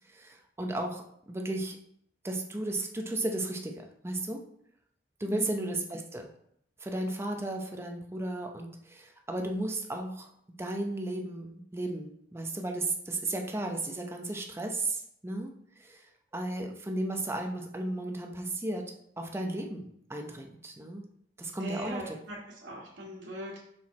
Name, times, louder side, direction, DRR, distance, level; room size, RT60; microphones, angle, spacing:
voice 1, 0.1-1.8 2.2-4.4 5.2-6.3 6.8-10.3 10.6-15.5 15.8-16.0 16.3-18.8 19.2-21.1 21.4-22.2, right 2 dB, 15° right, 2 dB, 0.7 m, -34 dB
voice 2, 21.6-23.6, right 1 dB, 80° right, -8 dB, 1.6 m, -40 dB
6.1 x 4.6 x 4.2 m, 0.72 s
head